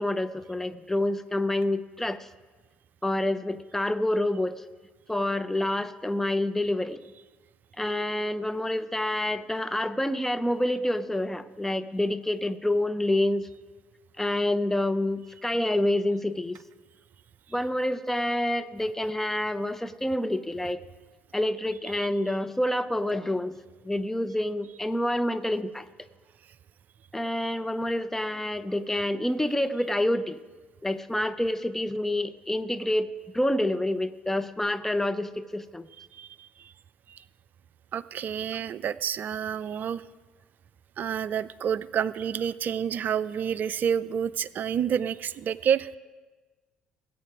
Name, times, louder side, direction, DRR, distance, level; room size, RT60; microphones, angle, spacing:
voice 1, 0.0-2.3 3.0-4.6 5.1-7.0 7.8-13.5 14.2-16.6 17.5-20.8 21.3-23.5 23.8-25.8 27.1-30.4 30.8-33.1 33.3-35.9, left 1 dB, 10° left, 11 dB, 0.7 m, -27 dB
voice 2, 36.0-36.7 37.1-37.2 37.9-40.0 41.0-45.9, right 8 dB, 45° right, 19 dB, 0.5 m, -29 dB
19.0 x 8.4 x 5.0 m, 1.3 s
figure-of-eight pair, 50°, 4 cm